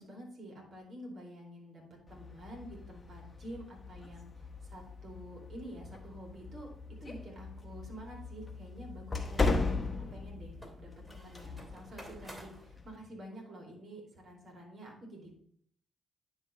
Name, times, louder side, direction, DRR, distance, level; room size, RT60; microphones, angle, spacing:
voice 1, 0.0-15.3, equal, 55° right, -1 dB, 2.8 m, -49 dB
sound 1, 2.1-13.0, left 3 dB, 35° left, 1.1 m, -38 dB
sound 2, 4.2-4.3 4.7-4.8 9.2-12.7, equal, 10° right, 2.7 m, -52 dB
9.6 x 3.2 x 4.9 m, 0.64 s
hypercardioid pair, 45°, 0 cm